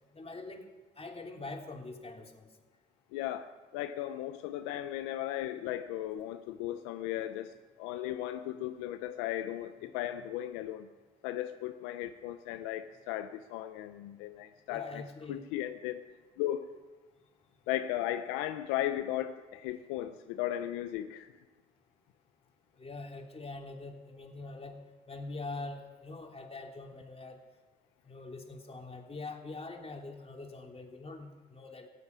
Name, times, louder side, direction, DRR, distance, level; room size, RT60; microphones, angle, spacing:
voice 1, 0.1-0.6 1.0-2.5 14.7-15.5 22.8-24.8 25.1-27.4 28.0-31.9, left 3 dB, 30° left, 2 dB, 3.2 m, -44 dB
voice 2, 3.1-3.5 3.7-7.5 7.8-10.9 11.2-15.0 15.3-16.0 16.4-16.7 17.7-21.3, left 13 dB, 90° left, 9 dB, 0.7 m, -36 dB
15.0 x 8.6 x 9.5 m, 1.3 s
hypercardioid pair, 55°, 20 cm